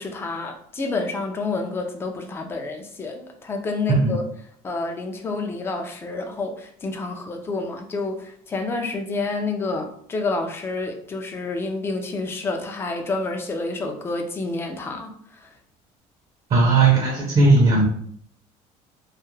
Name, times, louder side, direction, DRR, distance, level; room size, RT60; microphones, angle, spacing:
voice 1, 0.0-4.2 4.6-15.1 15.4-15.5, left 3 dB, 15° left, 4 dB, 0.4 m, -29 dB
voice 2, 16.5-17.9, right 3 dB, 40° right, -2 dB, 0.6 m, -17 dB
2.3 x 2.1 x 3.0 m, 0.62 s
cardioid pair, 145°, 14 cm